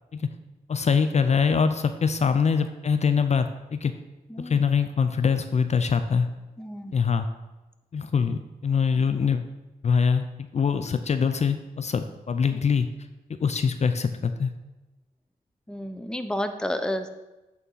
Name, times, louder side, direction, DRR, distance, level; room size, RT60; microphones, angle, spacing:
voice 1, 0.7-3.9 4.4-6.3 6.9-7.3 7.9-9.4 9.8-10.2 10.5-12.9 13.4-14.5, left 6 dB, 50° left, 9 dB, 0.5 m, -23 dB
voice 2, 4.3-4.6 6.6-7.1 12.5-12.6 15.7-17.1, left 1 dB, 5° left, 8 dB, 0.6 m, -31 dB
8.2 x 3.7 x 5.5 m, 1.1 s
cardioid pair, 65°, 15 cm